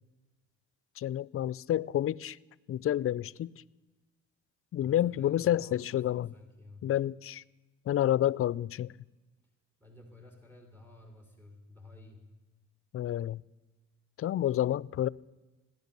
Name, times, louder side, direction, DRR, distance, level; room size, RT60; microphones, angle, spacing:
voice 1, 1.0-2.4 2.7-3.5 4.7-6.3 6.8-7.4 7.9-8.9 12.9-13.4 14.2-15.1, left 12 dB, 50° left, 0.4 m, -29 dB
voice 2, 4.8-6.9 9.8-12.3, left 2 dB, 15° right, 2.7 m, -53 dB
16.5 x 10.5 x 6.7 m
cardioid pair, 90°, 30 cm